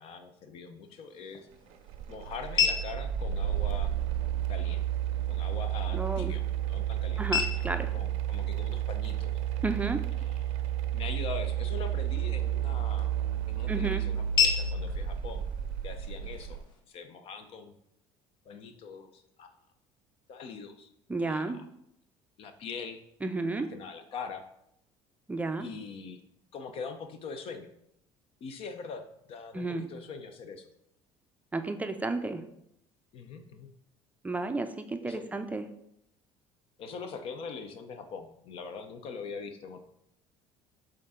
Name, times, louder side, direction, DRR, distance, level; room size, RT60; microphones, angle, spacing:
voice 1, 0.0-1.5 2.1-3.9 4.5-4.8 5.3-7.3 7.5-7.7 7.9-9.3 10.2-10.4 10.9-13.1 13.4-15.4 15.8-16.6 16.9-17.7 18.4-19.5 20.3-20.9 21.2-21.6 22.4-23.0 23.6-24.5 25.6-26.2 26.5-27.7 28.4-29.0 29.3-30.7 33.1-33.7 35.0-35.2 36.8-39.8, left 5 dB, 60° left, 8 dB, 0.7 m, -42 dB
sound 1, 0.8-16.8, left 6 dB, 40° left, 1.1 m, -36 dB
sound 2, 1.9-16.6, right 10 dB, 75° right, 0.5 m, -31 dB
voice 2, 5.9-6.4 7.2-7.9 9.6-10.0 13.7-14.0 21.1-21.6 23.2-23.7 25.3-25.7 29.5-29.8 31.5-32.4 34.2-35.7, right 3 dB, 15° right, 7 dB, 0.4 m, -32 dB
6.7 x 3.9 x 3.7 m, 0.76 s
cardioid pair, 110°, 11 cm